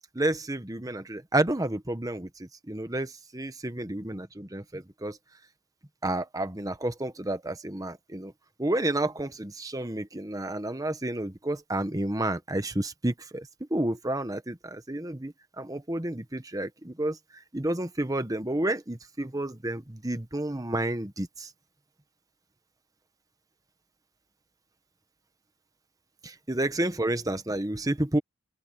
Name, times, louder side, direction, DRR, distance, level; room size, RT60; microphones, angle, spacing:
voice 1, 0.1-5.2 6.0-8.3 8.6-21.5 26.2-28.2, right 1 dB, 15° right, 1.1 m, -30 dB
open air
head